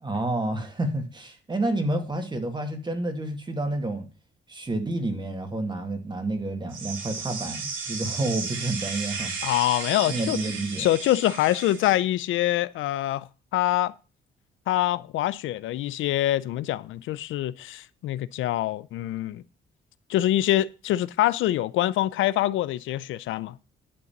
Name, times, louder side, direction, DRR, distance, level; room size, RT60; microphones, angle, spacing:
voice 1, 0.0-4.1 4.5-9.5 10.1-10.8, right 2 dB, 20° right, 2.3 m, -29 dB
sound 1, 6.7-11.9, right 5 dB, 85° right, 3.1 m, -34 dB
voice 2, 9.4-10.4 10.8-13.9 14.7-19.4 20.1-23.6, left 14 dB, 80° left, 0.5 m, -25 dB
11.0 x 3.9 x 7.1 m
cardioid pair, 90°, 20 cm